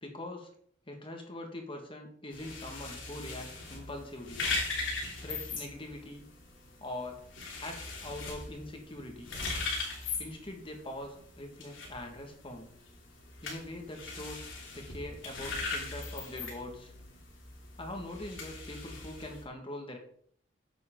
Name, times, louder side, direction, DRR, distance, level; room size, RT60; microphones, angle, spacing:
voice 1, 0.0-0.5 0.9-4.5 5.2-6.2 6.8-7.2 7.5-9.3 10.2-12.7 13.4-14.5 14.7-16.9 17.8-20.0, left 1 dB, 25° left, 3 dB, 1.8 m, -42 dB
sound 1, 2.3-19.4, left 3 dB, 90° left, 3.1 m, -40 dB
9.7 x 7.9 x 3.8 m, 0.62 s
head